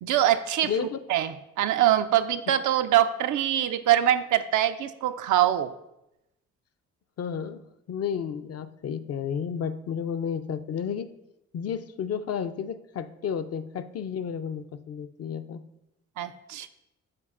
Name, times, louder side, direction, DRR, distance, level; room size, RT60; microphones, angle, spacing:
voice 1, 0.0-5.8 16.2-16.7, right 11 dB, 65° right, 10 dB, 0.5 m, -24 dB
voice 2, 0.6-1.0 7.2-7.6 7.9-11.1 11.5-15.6, left 7 dB, 50° left, 9 dB, 0.5 m, -32 dB
12.0 x 4.0 x 2.5 m, 0.88 s
supercardioid pair, 55°, 33 cm